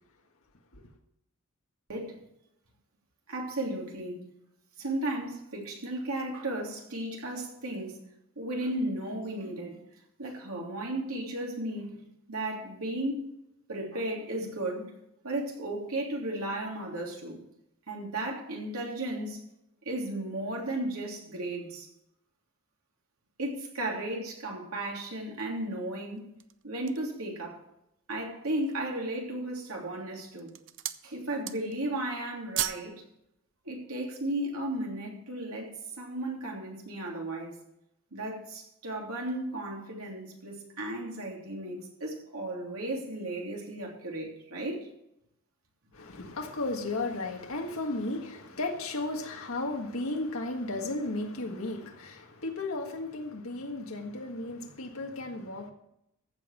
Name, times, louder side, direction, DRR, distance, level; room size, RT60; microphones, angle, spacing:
voice 1, 3.3-4.2 4.8-8.0 8.4-9.8 10.2-13.3 13.7-14.9 15.2-17.4 17.9-19.4 19.8-21.9 23.4-26.3 26.6-27.6 28.1-30.5 31.0-33.0 33.6-37.6 38.1-44.9, right 1 dB, 90° right, -1 dB, 3.2 m, -35 dB
sound 1, 26.2-27.2 27.8-27.9 28.3-28.9 29.6-30.0 30.3-31.1 31.3-31.9 32.1-32.9 33.2-33.4, right 13 dB, 60° right, 0.6 m, -36 dB
voice 2, 45.9-55.7, left 2 dB, 75° left, 3 dB, 1.7 m, -34 dB
14.5 x 5.4 x 7.4 m, 0.80 s
head